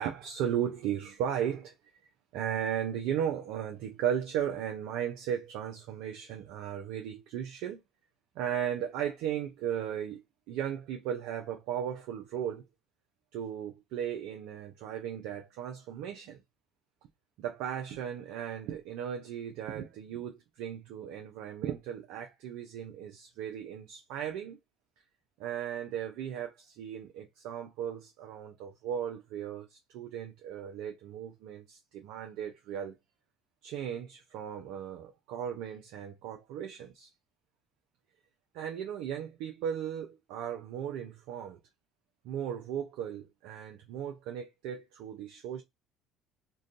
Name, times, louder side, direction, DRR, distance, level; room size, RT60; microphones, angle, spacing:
voice 1, 0.0-1.7 2.3-7.8 8.4-12.6 13.3-16.4 17.4-24.6 25.4-33.0 33.6-37.1 38.5-41.6 42.2-45.6, right 9 dB, 70° right, 0.4 m, -36 dB
2.5 x 2.2 x 2.3 m
hypercardioid pair, 65°, 0 cm